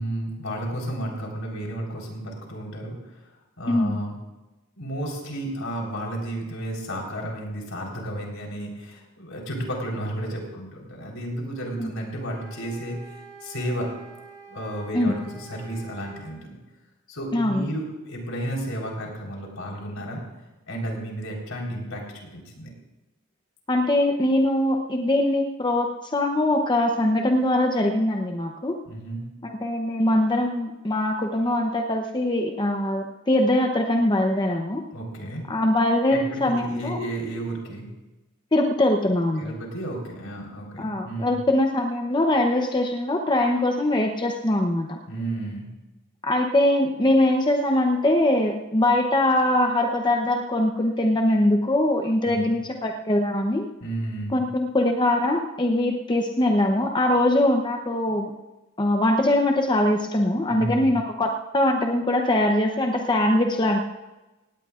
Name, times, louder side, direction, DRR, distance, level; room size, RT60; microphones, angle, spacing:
voice 1, 0.0-2.9 3.6-4.1 4.8-13.0 13.4-13.9 14.5-16.6 17.1-20.2 20.7-22.7 28.9-29.2 34.9-35.4 36.1-37.9 39.4-41.3 45.1-45.7 52.2-52.5 53.8-54.3 60.5-60.9, right 1 dB, 75° left, -1 dB, 4.1 m, -32 dB
sound 1, 12.2-16.4, right 5 dB, 65° right, 4.5 m, -46 dB
voice 2, 17.3-17.6 23.7-28.7 29.4-34.8 35.5-37.0 38.5-39.5 40.8-45.0 46.2-53.7 54.3-58.3 58.8-63.8, left 1 dB, 20° left, 3 dB, 0.8 m, -22 dB
19.0 x 17.0 x 2.5 m, 1.1 s
head